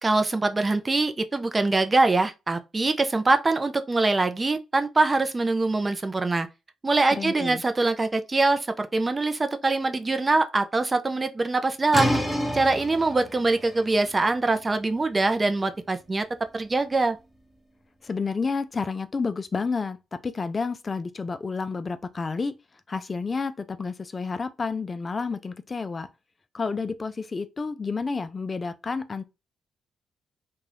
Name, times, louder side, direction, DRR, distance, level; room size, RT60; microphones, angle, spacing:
voice 1, 0.0-6.5 6.8-12.1 12.5-16.3 16.5-17.2, right 3 dB, 30° right, 0.4 m, -23 dB
voice 2, 7.1-7.6 18.0-22.5 22.9-26.1 26.5-29.3, left 4 dB, 40° left, 0.4 m, -30 dB
sound 1, 11.9-17.5, equal, ahead, 1.0 m, -31 dB
2.6 x 2.2 x 3.3 m
cardioid pair, 65°, 0 cm